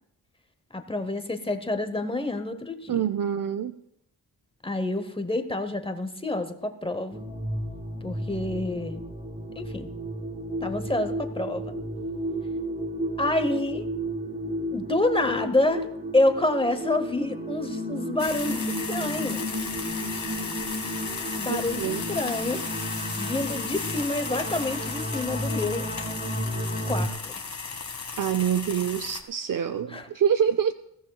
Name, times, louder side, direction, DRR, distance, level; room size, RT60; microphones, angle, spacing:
voice 1, 0.7-3.0 4.6-7.3 8.0-9.0 9.6-9.9 10.6-11.7 13.2-13.9 14.7-15.9 16.1-19.4 21.4-22.6 23.2-25.9 26.9-27.1 29.9-30.1, left 2 dB, 15° left, 9 dB, 0.9 m, -28 dB
voice 2, 2.9-3.7 21.5-22.0 28.2-30.7, right 8 dB, 60° right, 10 dB, 0.5 m, -26 dB
sound 1, 7.1-27.1, equal, 20° right, 2.0 m, -33 dB
sound 2, 18.2-29.2, left 5 dB, 45° left, 1.6 m, -35 dB
20.5 x 15.5 x 2.3 m, 0.76 s
wide cardioid pair, 125°, 39 cm